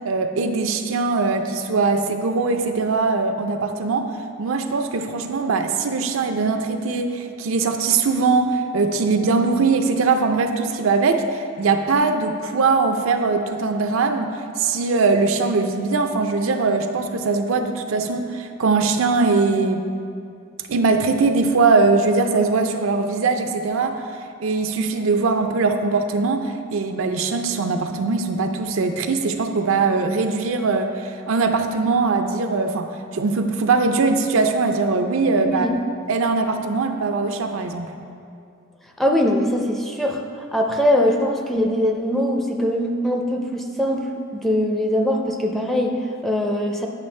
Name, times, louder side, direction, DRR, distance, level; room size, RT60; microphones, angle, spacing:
voice 1, 0.0-4.1 4.4-19.8 20.7-24.0 24.4-35.7 36.1-37.9, right 4 dB, 80° right, 6 dB, 0.5 m, -21 dB
voice 2, 39.0-40.2 40.5-46.9, left 1 dB, ahead, 1 dB, 0.4 m, -22 dB
8.7 x 6.1 x 3.2 m, 2.4 s
head